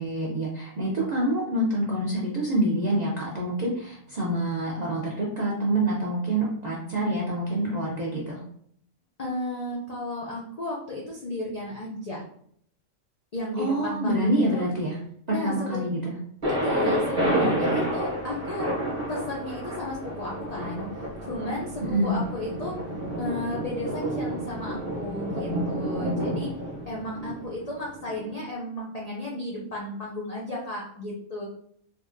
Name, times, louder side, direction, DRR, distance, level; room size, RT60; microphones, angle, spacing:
voice 1, 0.0-8.4 13.6-15.0 15.3-16.1 21.8-22.2, right 1 dB, 55° right, -5 dB, 0.4 m, -26 dB
voice 2, 9.2-12.2 13.3-14.7 15.3-15.8 16.6-18.7 19.1-20.9 21.2-22.8 23.2-26.5 26.9-31.4, left 1 dB, 65° left, -4 dB, 0.3 m, -34 dB
Thunder, 16.4-28.2, right 1 dB, 30° right, 0.9 m, -29 dB
3.5 x 2.3 x 2.5 m, 0.65 s
omnidirectional pair, 1.4 m